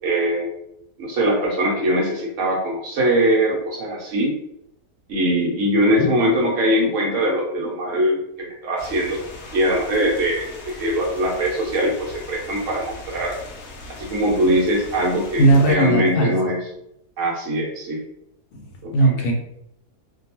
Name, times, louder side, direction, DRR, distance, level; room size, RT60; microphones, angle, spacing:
voice 1, 0.0-0.5 1.0-4.3 5.1-9.2 9.5-13.4 14.0-16.6 17.2-18.0 18.8-19.3, equal, 65° right, -2 dB, 0.9 m, -22 dB
sound 1, 8.8-15.7, left 2 dB, 65° left, 0.7 m, -39 dB
voice 2, 15.4-16.5 18.5-18.7 18.9-19.3, right 2 dB, 80° left, 1 dB, 1.1 m, -17 dB
2.5 x 2.3 x 2.8 m, 0.77 s
omnidirectional pair, 1.7 m